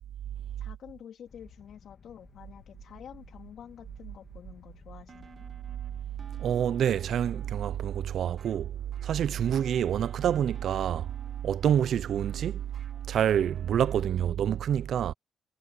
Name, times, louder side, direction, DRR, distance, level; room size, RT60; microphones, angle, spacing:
voice 1, 0.6-5.5 14.0-14.4, left 8 dB, 65° left, 2.7 m, -49 dB
sound 1, 1.3-7.6, left 6 dB, 45° left, 3.1 m, -55 dB
sound 2, 5.1-14.0, right 6 dB, 40° right, 1.8 m, -53 dB
voice 2, 6.4-8.7 9.0-11.1 11.4-12.6 13.1-15.1, right 9 dB, 65° right, 0.7 m, -27 dB
cardioid pair, 90°, 0 cm